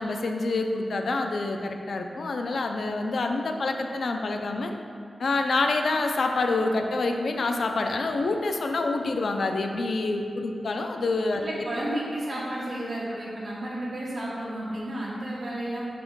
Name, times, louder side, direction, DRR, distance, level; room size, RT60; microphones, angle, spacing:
voice 1, 0.0-4.7 5.2-11.5, left 3 dB, 65° left, 4 dB, 0.4 m, -27 dB
voice 2, 11.4-15.9, right 1 dB, 45° right, -6 dB, 1.5 m, -32 dB
5.4 x 4.2 x 4.6 m, 2.4 s
wide cardioid pair, 135°, 0 cm